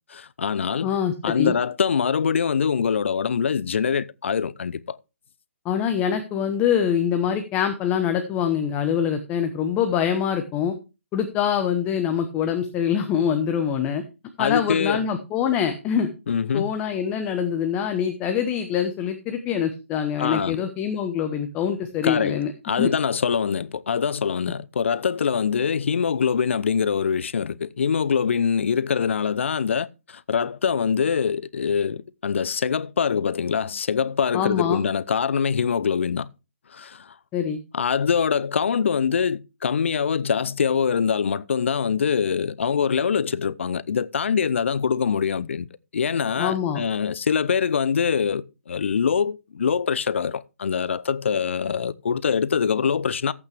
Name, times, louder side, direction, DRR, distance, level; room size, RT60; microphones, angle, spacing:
voice 1, 0.1-0.9 1.2-5.0 14.4-15.1 16.3-16.7 20.2-20.6 22.0-36.3 36.7-37.1 37.7-45.7 45.9-53.3, left 6 dB, 60° left, 0.7 m, -24 dB
voice 2, 0.8-1.5 5.6-10.8 11.1-14.0 14.4-16.1 16.5-22.5 22.8-22.9 34.3-34.8 37.3-37.6 46.4-46.8, left 8 dB, 15° left, 0.9 m, -24 dB
15.0 x 8.5 x 3.4 m
hypercardioid pair, 150°, 7 cm